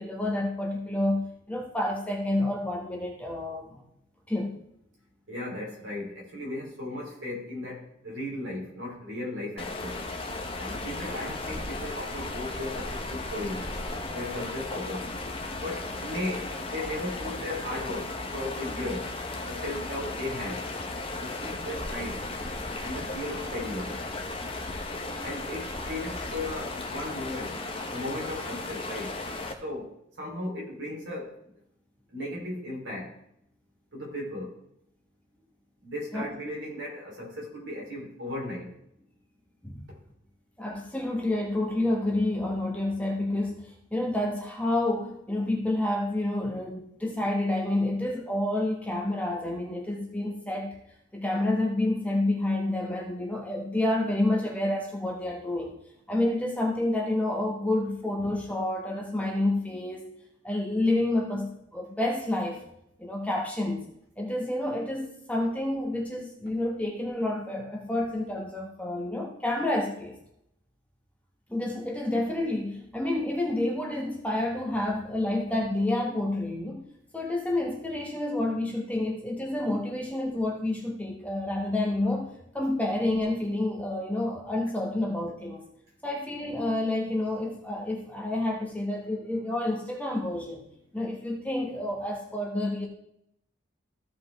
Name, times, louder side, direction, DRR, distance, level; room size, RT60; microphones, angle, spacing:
voice 1, 0.0-3.8 4.3-4.6 36.1-36.3 39.6-39.8 40.6-50.7 51.1-55.7 56.1-60.1 60.4-62.6 63.0-63.8 64.2-70.2 71.5-76.8 77.1-85.6 86.0-90.6 90.9-92.9, left 1 dB, 5° left, -1 dB, 1.2 m, -29 dB
voice 2, 5.3-10.1 10.6-13.7 14.1-15.1 15.6-19.1 19.5-20.6 21.1-22.2 22.8-24.0 25.2-27.5 27.9-29.2 29.6-31.3 32.1-33.1 33.9-34.6 35.8-38.7, left 1 dB, 70° right, -3 dB, 3.4 m, -36 dB
sound 1, 9.6-29.5, left 2 dB, 30° left, 0.8 m, -35 dB
15.5 x 5.2 x 3.4 m, 0.77 s
head